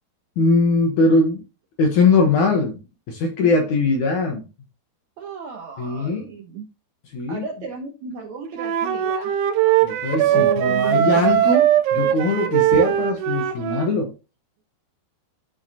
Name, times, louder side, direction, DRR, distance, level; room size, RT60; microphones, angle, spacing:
voice 1, 0.4-1.4 1.8-2.8 3.1-4.5 5.8-6.3 7.1-7.4 9.8-11.7 11.9-14.1, left 3 dB, 65° left, 2.1 m, -20 dB
voice 2, 5.2-6.7 7.3-9.8 10.0-11.3 12.5-12.6, right 6 dB, 70° right, 1.8 m, -33 dB
Wind instrument woodwind instrument, 8.6-13.9, right 11 dB, 90° right, 3.0 m, -20 dB
13.5 x 4.8 x 2.8 m
omnidirectional pair, 4.7 m